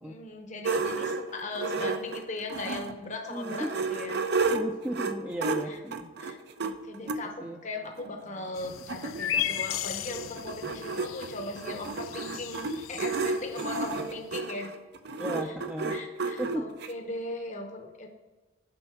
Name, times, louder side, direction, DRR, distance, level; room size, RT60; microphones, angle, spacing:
voice 1, 0.0-4.2 5.7-5.8 6.2-14.7 15.5-15.6 15.9-18.1, left 2 dB, 40° left, 3 dB, 0.8 m, -38 dB
sound 1, 0.6-2.9 3.3-7.2 8.0-8.1 8.4-8.5 8.6-16.9, right 4 dB, 60° right, 0.6 m, -32 dB
voice 2, 3.3-3.7 4.5-6.1 7.0-7.6 15.2-16.0 16.4-16.6, right 1 dB, 10° right, 1 dB, 0.5 m, -35 dB
sound 2, 8.5-14.1, left 10 dB, 80° left, 0.4 m, -36 dB
7.8 x 5.4 x 5.9 m, 1.2 s
head